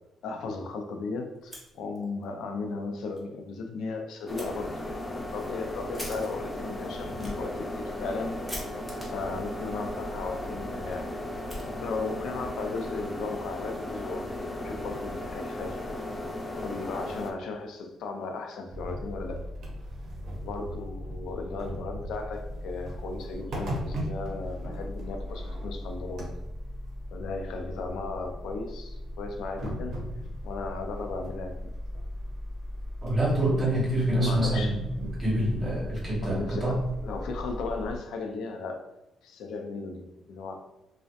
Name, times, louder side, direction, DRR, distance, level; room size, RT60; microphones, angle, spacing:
voice 1, 0.2-4.8 5.1-8.4 9.1-11.1 11.6-15.8 16.5-19.4 20.4-26.3 27.1-30.0 30.4-31.7 34.2-34.8 36.2-38.8 39.2-40.6, left 3 dB, 80° left, 4 dB, 0.4 m, -36 dB
Fire, 1.4-2.3 2.6-2.7 3.1-3.2 4.4-4.5 5.1-12.2, equal, 5° right, 0.9 m, -45 dB
sound 1, 4.3-17.3, left 1 dB, 20° left, 0.4 m, -36 dB
sound 2, 18.7-38.0, equal, 65° right, 0.6 m, -37 dB
voice 2, 33.0-36.8, right 1 dB, 30° right, -5 dB, 1.2 m, -26 dB
2.6 x 2.0 x 2.4 m, 0.92 s
cardioid pair, 100°, 0 cm